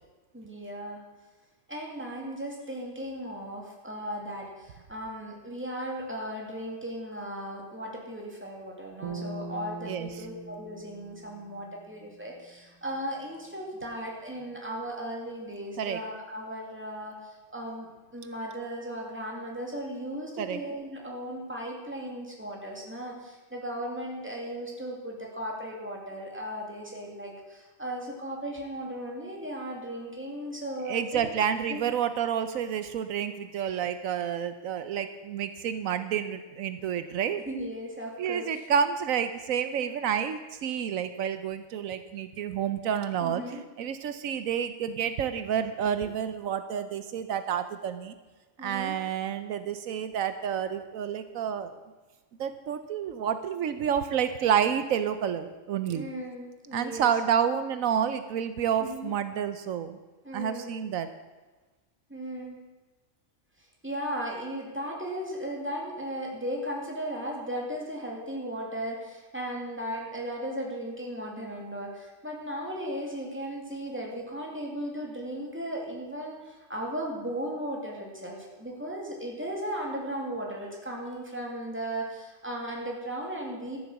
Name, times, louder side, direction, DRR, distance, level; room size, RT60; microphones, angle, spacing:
voice 1, 0.3-1.0 1.7-17.1 17.5-31.3 31.7-31.8 37.5-38.5 43.2-43.6 48.6-48.9 55.9-57.1 58.8-59.1 60.2-60.8 62.1-62.6 63.8-83.8, equal, 10° right, -1 dB, 2.5 m, -36 dB
sound 1, 9.0-12.4, right 3 dB, 65° right, 1.7 m, -41 dB
voice 2, 9.8-10.3 15.8-16.0 20.4-20.6 30.8-37.4 38.2-48.1 48.6-51.7 52.4-56.1 56.7-60.0 60.3-61.1, right 8 dB, 80° right, 10 dB, 1.1 m, -29 dB
13.0 x 7.7 x 7.4 m, 1.2 s
omnidirectional pair, 1.4 m